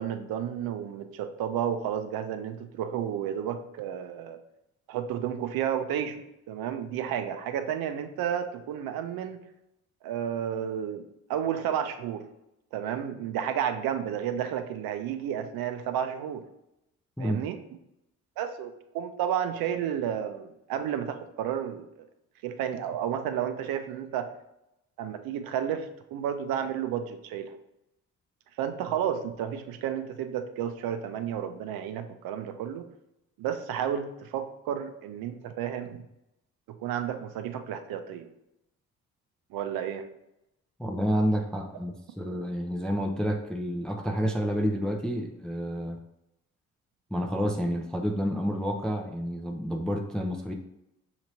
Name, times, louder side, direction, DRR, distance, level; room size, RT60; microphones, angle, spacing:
voice 1, 0.0-4.4 4.9-6.2 6.5-9.4 10.0-11.0 11.3-12.2 12.7-16.4 17.2-17.6 18.4-22.1 22.4-24.3 25.0-27.6 28.6-32.9 33.4-36.0 36.8-38.3 39.5-40.1, right 9 dB, 55° right, 8 dB, 0.6 m, -32 dB
voice 2, 40.8-46.0 47.1-50.5, equal, ahead, 3 dB, 0.5 m, -29 dB
6.5 x 2.9 x 2.7 m, 0.86 s
figure-of-eight pair, 40°, 42 cm